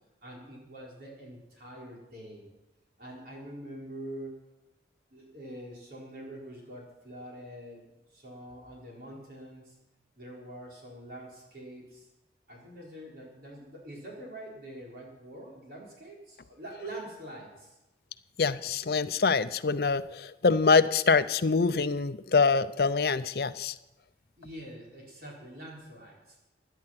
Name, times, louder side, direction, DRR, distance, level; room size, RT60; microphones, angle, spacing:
voice 1, 0.2-2.4 3.0-4.4 5.1-7.8 8.1-9.8 10.2-12.1 12.5-17.8 24.4-26.4, right 1 dB, 55° right, -3 dB, 4.8 m, -45 dB
voice 2, 18.4-23.7, left 4 dB, 60° left, 13 dB, 0.6 m, -25 dB
16.5 x 11.0 x 5.9 m, 0.97 s
head